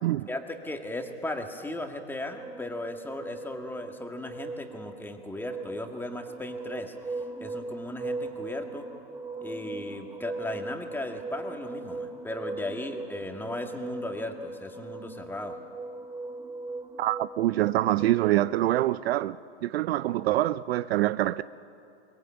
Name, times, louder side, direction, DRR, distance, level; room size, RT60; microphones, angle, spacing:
voice 1, 0.3-8.9 9.4-15.6, left 1 dB, 5° left, 1.9 m, -37 dB
sound 1, 2.3-18.7, right 3 dB, 10° right, 0.7 m, -39 dB
voice 2, 17.0-21.4, right 15 dB, 60° right, 0.6 m, -25 dB
22.5 x 21.0 x 8.8 m
hypercardioid pair, 120°, 34 cm